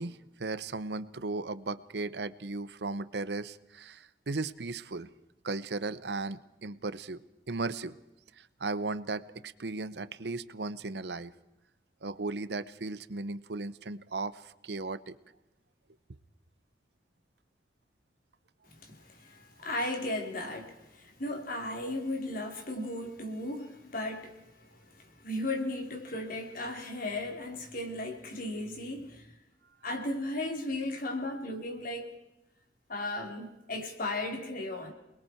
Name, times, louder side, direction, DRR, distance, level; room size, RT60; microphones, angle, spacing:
voice 1, 0.0-5.1 5.4-7.2 7.5-8.0 8.4-11.3 12.0-15.1, right 3 dB, 65° right, 0.8 m, -36 dB
voice 2, 18.7-29.3 29.8-32.1 32.9-34.9, left 1 dB, 55° left, 3.5 m, -36 dB
28.0 x 21.0 x 4.5 m
head